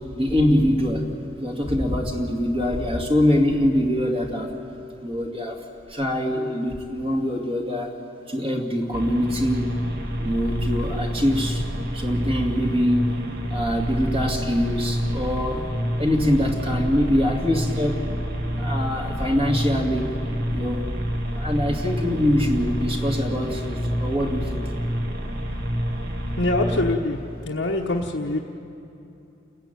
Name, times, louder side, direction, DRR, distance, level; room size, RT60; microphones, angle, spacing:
voice 1, 0.1-1.1 1.4-4.5 5.0-5.6 5.9-8.0 8.3-9.8 10.2-11.6 11.9-13.2 13.5-15.6 16.0-18.0 18.6-20.1 20.5-20.9 21.3-24.7, left 1 dB, 30° right, 1 dB, 2.3 m, -23 dB
sound 1, 8.9-26.9, equal, 60° right, 2.2 m, -28 dB
voice 2, 26.4-27.2 27.4-28.4, left 2 dB, 80° left, -2 dB, 1.2 m, -24 dB
29.0 x 15.0 x 9.2 m, 2.9 s
head